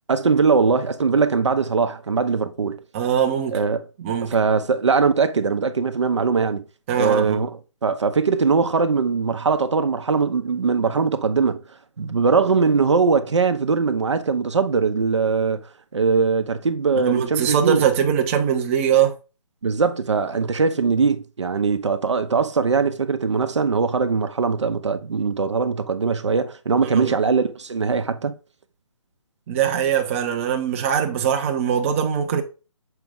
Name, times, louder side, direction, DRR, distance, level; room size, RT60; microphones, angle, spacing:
voice 1, 0.1-2.8 3.5-3.8 4.3-6.6 7.0-7.6 7.8-11.6 12.0-15.6 15.9-17.8 19.6-28.3, right 5 dB, 65° right, 0.9 m, -21 dB
voice 2, 2.9-3.6 4.0-4.4 6.9-7.4 17.0-19.1 26.9-27.1 29.5-32.4, right 8 dB, 25° right, 0.7 m, -22 dB
6.8 x 4.8 x 3.5 m
figure-of-eight pair, 145°, 16 cm